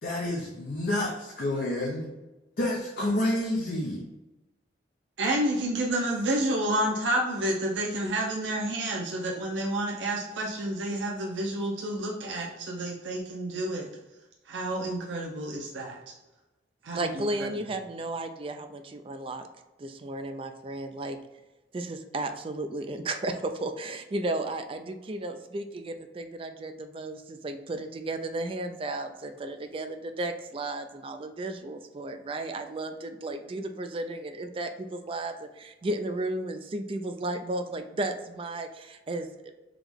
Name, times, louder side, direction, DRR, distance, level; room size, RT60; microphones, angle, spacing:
voice 1, 0.0-2.1 2.6-4.0, left 1 dB, 55° left, -4 dB, 0.6 m, -29 dB
voice 2, 5.2-13.9 14.5-16.0 16.8-17.5, right 1 dB, 90° right, -1 dB, 0.6 m, -29 dB
voice 3, 16.9-19.5 19.8-21.2 21.7-39.5, right 2 dB, 30° right, 7 dB, 0.3 m, -34 dB
3.7 x 3.0 x 3.4 m, 1.1 s
head